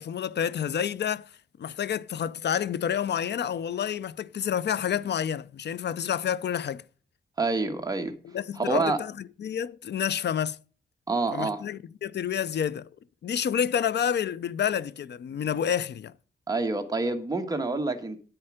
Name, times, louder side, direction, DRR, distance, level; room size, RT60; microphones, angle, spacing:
voice 1, 0.0-1.3 1.6-6.8 8.2-9.1 9.4-10.6 11.3-12.9 13.2-16.1, left 8 dB, 75° left, 0.6 m, -29 dB
voice 2, 7.4-8.1 8.6-9.0 11.1-11.6 16.5-18.2, right 3 dB, 20° right, 1.6 m, -27 dB
9.8 x 8.9 x 5.0 m
wide cardioid pair, 100°, 18 cm